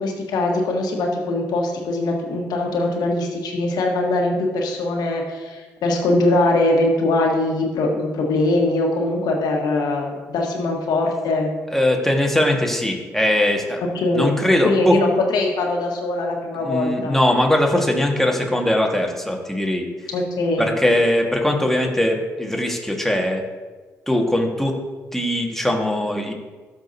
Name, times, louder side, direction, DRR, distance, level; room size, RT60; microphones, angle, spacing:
voice 1, 0.0-11.5 13.9-14.3 14.6-17.1 20.1-20.7, left 2 dB, 70° left, 1 dB, 1.5 m, -22 dB
voice 2, 11.7-13.8 14.1-15.0 16.6-19.9 20.6-23.4 24.1-24.7 25.1-26.3, left 1 dB, 5° left, 1 dB, 1.8 m, -20 dB
13.0 x 5.1 x 2.8 m, 1.3 s
hypercardioid pair, 45°, 7 cm